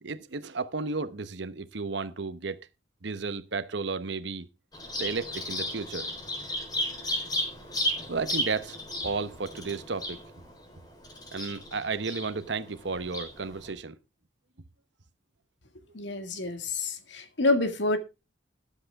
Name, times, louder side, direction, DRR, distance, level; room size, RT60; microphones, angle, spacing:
voice 1, 0.0-2.7 3.0-4.5 5.0-6.1 8.1-8.8 9.0-10.2 11.3-13.9, right 4 dB, 65° right, 0.9 m, -33 dB
Bird vocalization bird call bird song, 4.7-13.7, left 1 dB, 20° left, 3.9 m, -34 dB
voice 2, 15.9-18.0, left 2 dB, 70° left, 2.0 m, -27 dB
13.5 x 10.5 x 3.5 m
head